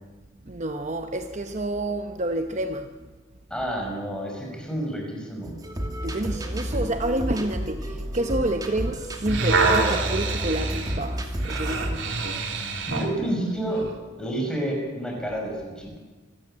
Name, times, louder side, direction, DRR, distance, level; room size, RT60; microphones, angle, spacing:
voice 1, 0.5-2.9 6.0-12.2, right 1 dB, 35° right, 0.9 m, -29 dB
voice 2, 3.5-5.5 12.9-13.9 14.2-16.0, right 1 dB, 5° left, 5.8 m, -29 dB
sound 1, 5.4-12.0, right 1 dB, 20° right, 2.4 m, -31 dB
sound 2, 9.3-13.1 13.8-13.9, right 3 dB, 75° right, 3.2 m, -26 dB
26.0 x 14.0 x 8.9 m
head